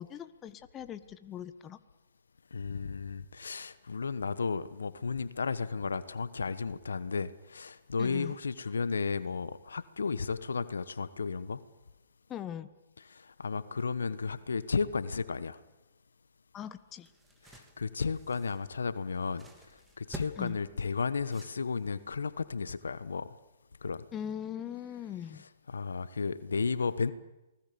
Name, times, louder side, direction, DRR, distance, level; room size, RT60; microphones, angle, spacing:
voice 1, 0.0-1.8 8.0-8.4 12.3-12.7 16.5-17.1 20.4-20.6 24.1-25.5, left 9 dB, 20° left, 12 dB, 1.3 m, -41 dB
voice 2, 2.5-11.6 13.1-15.6 17.5-19.5 20.0-23.3 23.8-24.0 25.7-27.1, left 5 dB, 80° left, 15 dB, 1.2 m, -33 dB
sound 1, 16.6-22.1, right 2 dB, 10° right, 3.0 m, -51 dB
28.5 x 20.0 x 7.0 m, 1.0 s
hypercardioid pair, 125°, 0 cm